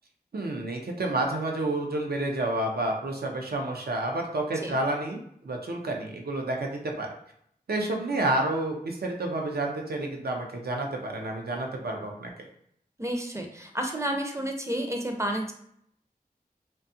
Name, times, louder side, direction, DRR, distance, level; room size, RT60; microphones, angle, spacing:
voice 1, 0.3-7.1 7.7-12.4, right 2 dB, 80° right, 1 dB, 0.5 m, -30 dB
voice 2, 13.0-15.5, right 1 dB, 20° right, 3 dB, 0.5 m, -31 dB
2.7 x 2.2 x 2.6 m, 0.69 s
wide cardioid pair, 55°, 16 cm